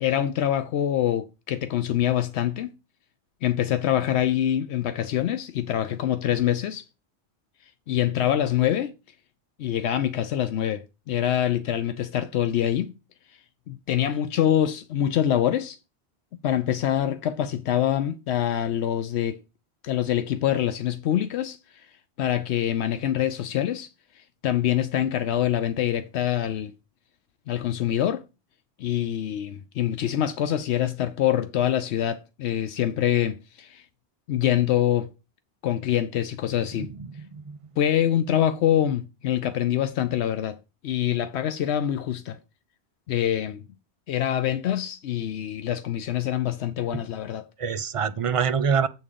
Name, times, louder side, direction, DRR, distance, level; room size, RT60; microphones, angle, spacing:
voice 1, 0.0-2.7 3.4-6.8 7.9-8.9 9.6-12.9 13.7-15.8 16.4-19.4 19.8-21.6 22.2-23.9 24.2-26.7 27.5-28.2 28.8-33.8 34.3-35.1 35.6-36.9 37.8-40.6 40.8-42.4 43.1-43.6 44.1-47.5, left 11 dB, 85° left, 0.9 m, -25 dB
voice 2, 36.8-37.6 47.6-48.9, right 6 dB, 45° right, 0.5 m, -26 dB
8.0 x 3.7 x 6.7 m
omnidirectional pair, 1.1 m